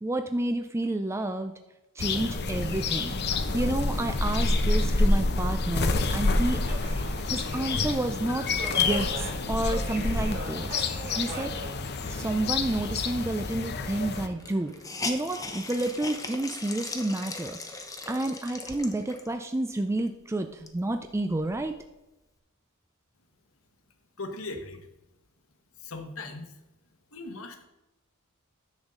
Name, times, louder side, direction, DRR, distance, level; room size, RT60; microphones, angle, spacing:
voice 1, 0.0-1.5 2.0-3.2 3.5-6.6 7.3-8.5 8.8-10.7 11.1-11.6 12.1-14.7 15.0-21.7, right 1 dB, 10° right, 7 dB, 0.4 m, -30 dB
sound 1, 2.0-14.3, left 3 dB, 50° left, 0.8 m, -28 dB
Subway metro underground, 2.4-16.0, right 1 dB, 45° right, 2.2 m, -44 dB
Hiss, 13.6-13.7 13.9-14.0 14.4-19.4 20.0-20.1 20.5-21.8, left 3 dB, 15° left, 0.9 m, -39 dB
voice 2, 24.2-24.9 25.8-26.6 27.1-27.7, left 2 dB, 70° left, 6 dB, 1.3 m, -39 dB
10.5 x 7.2 x 3.8 m, 0.98 s
head